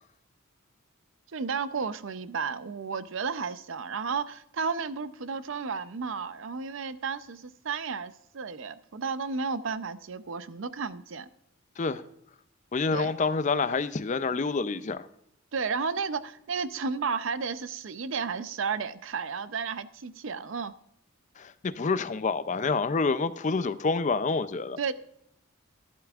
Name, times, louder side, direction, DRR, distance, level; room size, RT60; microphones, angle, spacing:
voice 1, 1.3-11.3 12.9-13.1 15.5-20.7 24.8-24.9, right 5 dB, 60° right, 0.6 m, -33 dB
voice 2, 12.7-15.1 21.4-24.8, left 4 dB, 35° left, 0.4 m, -28 dB
11.5 x 11.5 x 2.4 m
head